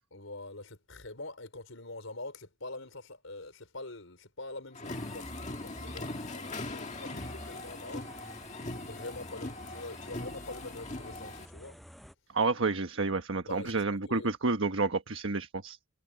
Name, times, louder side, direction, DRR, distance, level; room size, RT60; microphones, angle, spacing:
voice 1, 0.1-8.1 8.7-11.8 13.5-14.3, left 2 dB, 80° left, 4.9 m, -45 dB
sound 1, 4.8-11.5, left 2 dB, 35° left, 2.0 m, -41 dB
sound 2, 4.8-12.2, equal, ahead, 5.7 m, -50 dB
voice 2, 12.3-15.8, right 3 dB, 80° right, 1.3 m, -30 dB
head